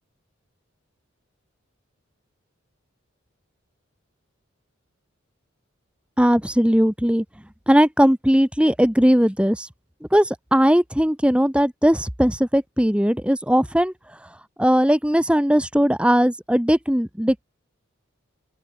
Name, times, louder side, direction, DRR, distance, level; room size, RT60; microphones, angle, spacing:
voice 1, 6.2-7.2 7.7-9.7 10.1-13.9 14.6-17.4, equal, 5° right, 1.3 m, -19 dB
open air
head